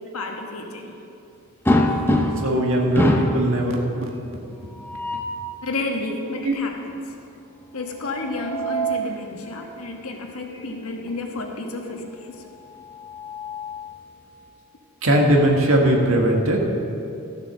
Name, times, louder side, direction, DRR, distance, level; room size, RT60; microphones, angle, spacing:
voice 1, 0.1-0.9 5.6-7.1 7.7-12.4, left 2 dB, 85° left, 2 dB, 1.3 m, -31 dB
sound 1, 1.7-2.6 3.0-3.4 4.7-5.4 8.1-9.1 10.5-10.7 11.1-11.2 12.7-14.0, equal, 10° left, 0.6 m, -24 dB
voice 2, 2.4-3.7 6.4-6.6 15.0-16.6, right 1 dB, 65° right, 0 dB, 1.7 m, -19 dB
13.5 x 7.3 x 6.2 m, 2.7 s
head